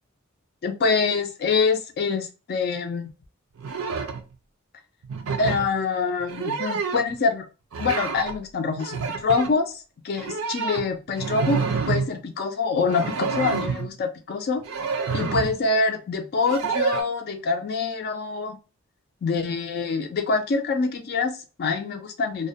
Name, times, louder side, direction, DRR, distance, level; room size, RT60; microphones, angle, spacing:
voice 1, 0.6-3.1 5.4-7.4 7.8-9.8 10.0-11.6 11.9-14.6 15.1-18.6 19.2-22.5, left 4 dB, 50° left, 5 dB, 0.3 m, -25 dB
sound 1, 3.6-4.2 5.0-5.7 6.2-7.2 7.7-8.4 8.7-9.5 10.2-12.1 12.8-13.9 14.6-15.6 16.5-17.0, right 5 dB, 70° right, 0.4 m, -28 dB
2.3 x 2.1 x 2.6 m, 0.32 s
head